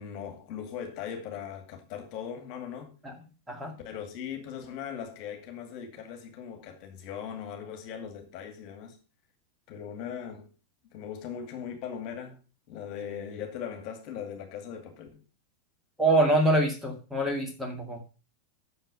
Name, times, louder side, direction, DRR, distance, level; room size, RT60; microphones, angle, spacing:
voice 1, 0.0-2.9 3.8-9.0 9.7-10.5 10.9-12.4 12.7-15.2, left 8 dB, 40° left, 2.2 m, -39 dB
voice 2, 3.5-3.8 16.0-18.0, right 1 dB, 5° right, 2.1 m, -25 dB
8.9 x 6.8 x 5.4 m
figure-of-eight pair, 90°, 0 cm